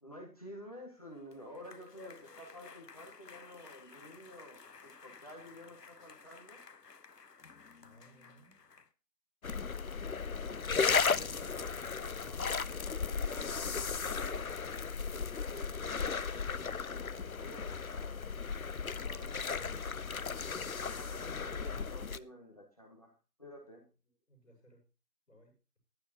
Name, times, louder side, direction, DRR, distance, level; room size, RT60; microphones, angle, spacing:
voice 1, 0.0-6.6 9.8-12.5 13.1-14.6 15.1-18.2 18.8-20.2 20.9-23.9, equal, 25° left, 1 dB, 1.7 m, -52 dB
sound 1, 1.0-8.9, left 5 dB, 75° left, 1.1 m, -55 dB
voice 2, 7.8-8.6 24.0-24.8 25.3-25.6, right 1 dB, ahead, -20 dB, 3.8 m, -63 dB
sound 2, 9.4-22.2, left 5 dB, 60° left, 0.6 m, -35 dB
14.5 x 11.5 x 2.9 m, 0.33 s
figure-of-eight pair, 175°, 48 cm